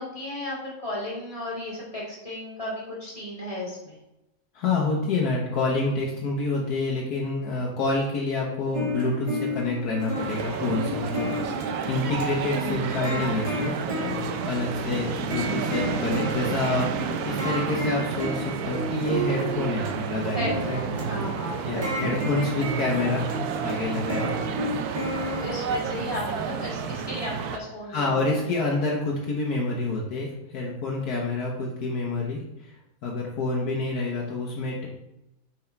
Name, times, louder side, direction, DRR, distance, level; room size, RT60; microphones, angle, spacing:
voice 1, 0.0-4.0 14.7-15.0 20.3-22.2 24.1-24.5 25.3-28.3, left 1 dB, 20° left, -6 dB, 2.3 m, -34 dB
voice 2, 4.5-16.9 17.2-20.8 21.7-23.3 23.6-24.4 27.9-32.7 33.0-34.9, left 3 dB, 85° left, -2 dB, 1.5 m, -28 dB
sound 1, 8.7-26.0, equal, 25° right, 1.1 m, -33 dB
sound 2, 10.1-27.6, right 7 dB, 85° right, 1.1 m, -31 dB
5.8 x 4.5 x 4.4 m, 0.91 s
omnidirectional pair, 1.6 m